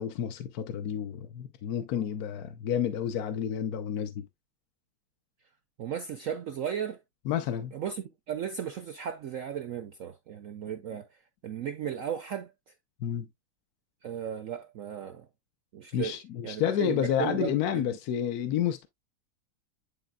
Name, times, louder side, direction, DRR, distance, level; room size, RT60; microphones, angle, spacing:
voice 1, 0.0-4.2 7.3-7.7 13.0-13.3 15.9-18.9, left 9 dB, 65° left, 1.0 m, -30 dB
voice 2, 5.8-7.0 7.7-11.1 11.4-12.5 14.0-15.3 15.7-16.2 16.4-18.0, right 8 dB, 65° right, 0.8 m, -35 dB
10.0 x 4.1 x 2.3 m
omnidirectional pair, 2.1 m